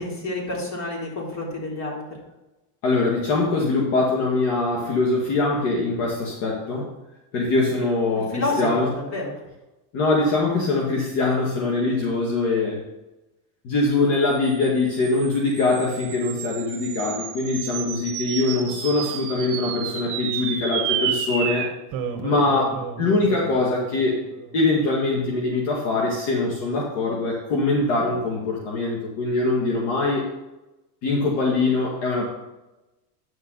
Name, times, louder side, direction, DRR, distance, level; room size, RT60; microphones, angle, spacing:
voice 1, 0.0-2.2 8.1-9.3, left 2 dB, 35° left, -3 dB, 3.6 m, -29 dB
voice 2, 2.8-6.9 7.3-8.9 9.9-12.8 13.6-21.6 22.2-24.1 24.5-30.3 31.0-32.2, left 3 dB, 60° left, -2 dB, 2.3 m, -23 dB
sound 1, 14.5-25.1, right 8 dB, 40° right, 1.5 m, -32 dB
10.5 x 6.5 x 4.1 m, 1.0 s
supercardioid pair, 125°, 48 cm